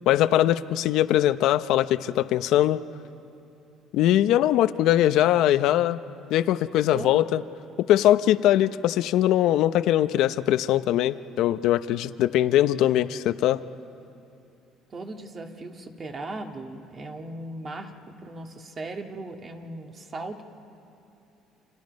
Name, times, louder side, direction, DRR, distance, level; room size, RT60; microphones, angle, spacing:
voice 1, 0.1-2.8 3.9-6.0 6.3-7.4 7.9-13.6, left 12 dB, 70° left, 13 dB, 0.6 m, -21 dB
voice 2, 6.9-7.2 14.9-20.4, right 2 dB, 35° right, 4 dB, 1.9 m, -37 dB
29.0 x 27.5 x 5.3 m, 2.7 s
cardioid pair, 120°, 0 cm